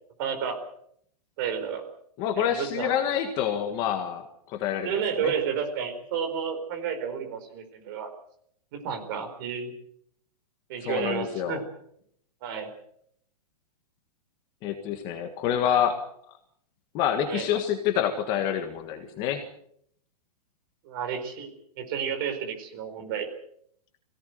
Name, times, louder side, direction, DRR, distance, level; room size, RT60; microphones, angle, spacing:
voice 1, 0.2-0.6 1.4-1.8 2.4-2.9 4.8-8.1 8.7-9.7 10.7-11.6 12.4-12.7 17.3-17.5 20.8-23.3, right 7 dB, 35° right, 6 dB, 4.6 m, -31 dB
voice 2, 2.2-5.3 10.8-11.6 14.6-16.0 16.9-19.5, left 9 dB, 20° left, 6 dB, 1.6 m, -27 dB
23.0 x 17.5 x 8.0 m, 0.68 s
hypercardioid pair, 175°, 20 cm